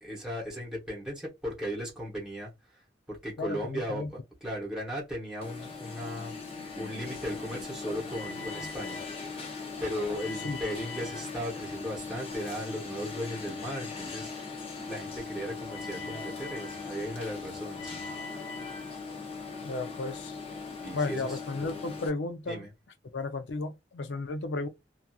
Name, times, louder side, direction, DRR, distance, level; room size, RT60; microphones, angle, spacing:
voice 1, 0.0-2.5 3.1-9.0 9.8-14.3 14.8-18.1 20.8-21.4 22.5-22.7, equal, 5° right, 0.9 m, -36 dB
voice 2, 3.4-4.1 10.4-10.6 19.6-20.3 20.9-22.7 23.1-24.7, left 3 dB, 80° left, 0.5 m, -33 dB
Alarm, 5.4-22.1, left 4 dB, 35° left, 0.6 m, -39 dB
2.8 x 2.4 x 2.3 m
head